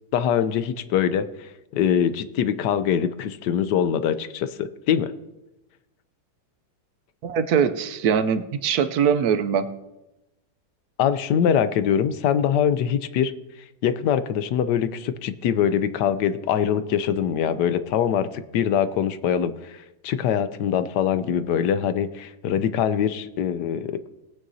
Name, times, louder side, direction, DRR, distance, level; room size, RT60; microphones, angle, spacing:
voice 1, 0.1-1.3 1.7-5.1 11.0-13.3 13.8-19.8 20.0-24.0, left 8 dB, 70° left, 12 dB, 1.2 m, -23 dB
voice 2, 7.2-9.7, right 7 dB, 70° right, 11 dB, 1.0 m, -22 dB
19.5 x 9.3 x 2.7 m, 0.97 s
omnidirectional pair, 2.0 m